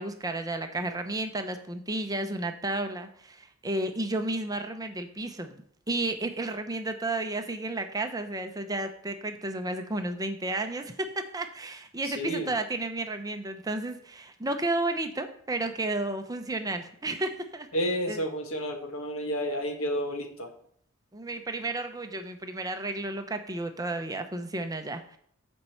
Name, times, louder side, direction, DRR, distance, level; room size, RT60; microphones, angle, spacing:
voice 1, 0.0-5.6 5.9-17.7 18.1-18.2 21.1-25.2, right 2 dB, 15° right, 6 dB, 0.7 m, -32 dB
voice 2, 12.0-12.5 17.7-20.5, equal, 65° left, 4 dB, 1.5 m, -31 dB
7.5 x 5.4 x 7.0 m, 0.63 s
head